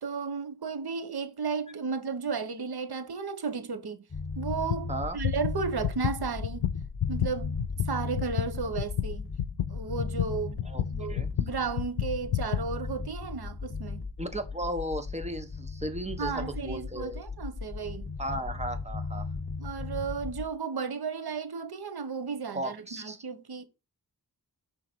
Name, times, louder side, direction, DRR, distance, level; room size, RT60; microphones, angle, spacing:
voice 1, 0.0-4.0 4.4-6.7 7.1-7.5 7.9-9.3 9.7-10.6 10.9-14.0 16.2-18.1 19.6-23.6, right 5 dB, 80° right, 1.0 m, -34 dB
sound 1, 4.1-20.5, left 4 dB, 30° left, 1.6 m, -37 dB
sound 2, 4.5-4.9 5.2-12.7, left 10 dB, 85° left, 0.5 m, -31 dB
voice 2, 14.2-17.2 18.2-19.3 22.5-23.2, right 1 dB, 15° right, 1.3 m, -35 dB
5.9 x 3.8 x 4.4 m
cardioid pair, 50°, 38 cm